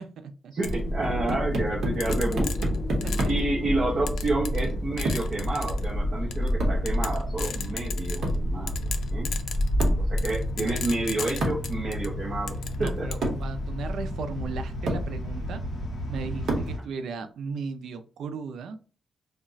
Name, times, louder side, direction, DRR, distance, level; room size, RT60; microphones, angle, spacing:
voice 1, 0.0-0.5 3.0-3.3 12.8-15.6 16.1-18.8, right 5 dB, 90° right, 9 dB, 0.4 m, -36 dB
voice 2, 0.5-2.6 3.1-9.4 10.0-13.1, right 2 dB, 35° right, -3 dB, 0.6 m, -30 dB
sound 1, 0.6-0.7 2.0-3.4 4.1-4.7 5.0-5.8 6.3-6.5 6.9-8.4 8.7-12.1 12.5-13.3, left 7 dB, 80° left, 0.3 m, -36 dB
sound 2, 0.6-16.8, equal, 40° left, 0.6 m, -30 dB
sound 3, 1.0-3.6 5.1-5.4 6.6-6.9 8.2-8.5 9.8-10.1 11.4-11.7 12.7-12.8 13.2-13.5 14.4-14.5 14.9-15.1 16.5-16.8, right 1 dB, 70° right, 0.8 m, -30 dB
2.3 x 2.1 x 3.8 m, 0.37 s
wide cardioid pair, 175°, 0 cm